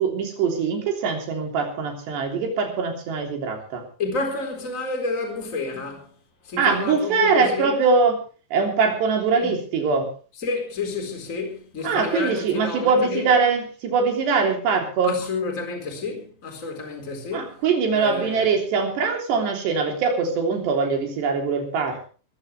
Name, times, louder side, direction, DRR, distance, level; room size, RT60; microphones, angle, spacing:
voice 1, 0.0-3.8 6.6-8.2 8.5-10.1 11.8-15.2 17.3-22.1, right 5 dB, 70° right, 5.5 m, -22 dB
voice 2, 4.0-6.1 6.4-7.8 9.4-9.6 10.4-13.3 15.0-17.6 17.9-18.5, left 3 dB, 20° left, 4.0 m, -29 dB
24.0 x 14.5 x 3.4 m
omnidirectional pair, 5.1 m